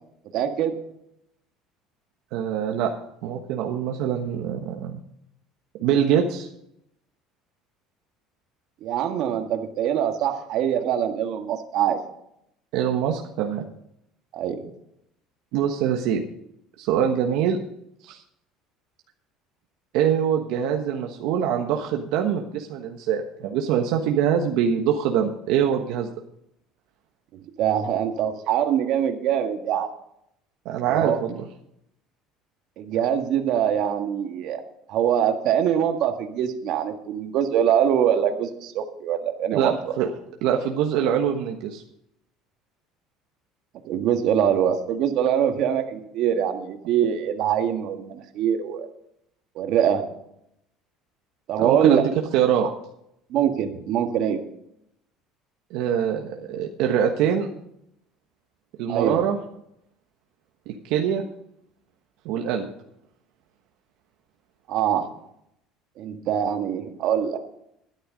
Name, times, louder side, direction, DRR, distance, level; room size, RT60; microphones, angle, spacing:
voice 1, 0.3-0.8 8.8-12.0 14.3-14.7 27.6-29.9 30.9-31.2 32.8-34.6 34.9-39.8 43.8-48.9 49.5-50.1 51.5-52.0 53.3-54.4 58.9-59.2 64.7-65.1 66.0-67.4, right 9 dB, 55° right, 5 dB, 1.7 m, -23 dB
voice 2, 2.3-2.9 3.2-5.0 5.8-6.5 12.7-13.6 15.5-16.2 16.8-17.6 18.0-18.2 19.9-26.1 30.6-31.4 39.5-40.1 40.4-41.8 51.6-52.7 55.7-57.5 58.8-59.4 60.7-61.2 62.2-62.7, right 8 dB, 70° right, 3 dB, 1.3 m, -24 dB
12.5 x 10.5 x 5.2 m, 0.76 s
cardioid pair, 150°, 0 cm